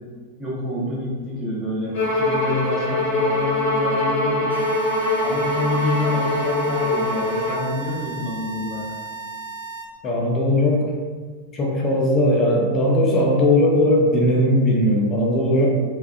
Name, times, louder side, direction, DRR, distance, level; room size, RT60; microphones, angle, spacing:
voice 1, 0.4-4.5 5.2-8.9, left 1 dB, 5° right, -8 dB, 0.9 m, -27 dB
Bowed string instrument, 1.9-7.7, left 2 dB, 50° left, 1.0 m, -23 dB
sound 1, 4.5-9.8, right 4 dB, 85° right, 0.5 m, -35 dB
voice 2, 10.0-10.9 11.5-15.7, left 1 dB, 25° left, -2 dB, 0.5 m, -18 dB
3.2 x 2.4 x 2.4 m, 1.5 s
figure-of-eight pair, 90°, 0 cm